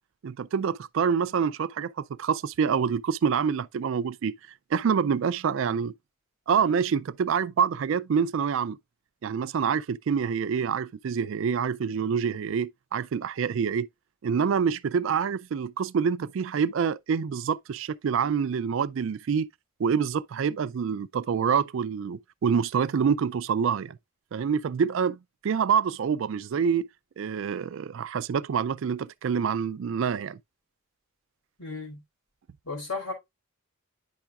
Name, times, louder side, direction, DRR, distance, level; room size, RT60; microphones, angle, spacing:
voice 1, 0.2-4.3 4.7-5.9 6.5-8.8 9.2-13.9 14.2-19.5 19.8-24.0 24.3-26.9 27.2-30.4, right 6 dB, 60° right, 0.3 m, -26 dB
voice 2, 31.6-32.0 32.6-33.1, left 3 dB, 70° left, 4.2 m, -34 dB
8.9 x 5.8 x 2.4 m
head